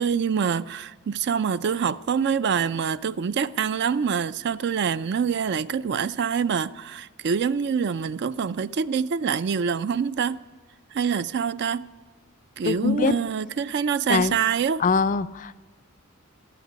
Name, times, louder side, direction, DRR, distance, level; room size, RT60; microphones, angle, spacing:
voice 1, 0.0-10.4 10.9-11.8 12.6-14.8, right 6 dB, 50° right, 0.4 m, -25 dB
voice 2, 12.6-13.2 14.1-14.4 14.8-15.6, left 5 dB, 35° left, 0.4 m, -23 dB
15.0 x 8.2 x 9.5 m
head